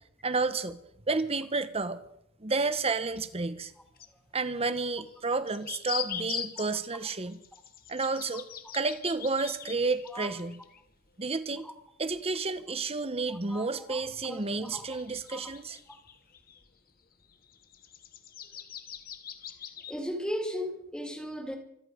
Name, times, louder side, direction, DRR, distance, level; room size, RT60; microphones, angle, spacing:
voice 1, 0.2-0.8 1.1-2.0 2.4-3.7 4.3-7.4 7.9-8.5 8.7-10.6 11.2-11.7 12.0-15.8, right 3 dB, 25° right, 12 dB, 1.0 m, -31 dB
sound 1, 3.6-3.7 4.0-4.1 5.1-11.3 11.6-11.7 12.1-12.2 13.6-13.7 14.3-16.7 17.1-20.0, left 8 dB, 40° left, 1.3 m, -42 dB
voice 2, 13.3-15.0 15.3-15.5 19.9-21.6, equal, 5° left, 4 dB, 2.1 m, -37 dB
25.5 x 10.5 x 5.1 m, 0.75 s
head